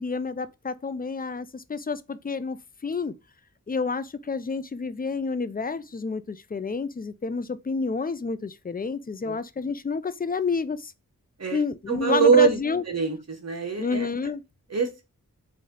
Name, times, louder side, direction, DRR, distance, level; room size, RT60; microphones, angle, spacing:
voice 1, 0.0-3.1 3.7-10.9 11.5-12.8 13.8-14.4, left 4 dB, 25° left, 0.4 m, -29 dB
voice 2, 11.9-12.6 12.9-14.1 14.7-15.1, right 6 dB, 45° right, 1.2 m, -23 dB
3.2 x 2.7 x 3.7 m
cardioid pair, 40°, 35 cm